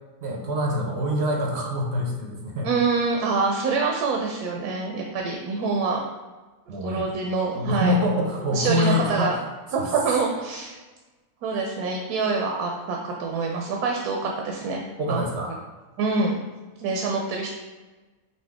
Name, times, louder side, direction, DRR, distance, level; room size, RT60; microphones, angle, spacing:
voice 1, 0.2-2.7 6.7-7.1 7.4-9.4 9.7-9.9 15.0-15.6, left 1 dB, 60° right, 0 dB, 0.7 m, -25 dB
voice 2, 2.6-6.0 6.8-8.0 8.5-9.3 9.7-10.8 11.4-14.8 15.1-15.2 16.0-16.4 16.8-17.5, right 4 dB, 80° right, 0 dB, 1.1 m, -25 dB
5.5 x 2.7 x 3.4 m, 1.2 s
omnidirectional pair, 1.6 m